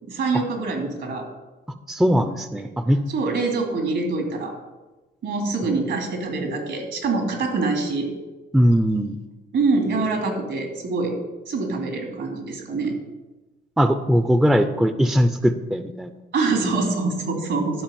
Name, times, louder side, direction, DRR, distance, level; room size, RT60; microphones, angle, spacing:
voice 1, 0.1-1.2 2.5-2.6 3.1-4.5 5.2-8.1 9.5-11.1 11.5-13.0 16.3-17.8, right 3 dB, 70° right, 3 dB, 2.9 m, -25 dB
voice 2, 1.9-3.0 8.5-9.2 13.8-16.1, equal, ahead, 10 dB, 0.5 m, -20 dB
11.5 x 5.0 x 7.0 m, 1.1 s
cardioid pair, 90°, 20 cm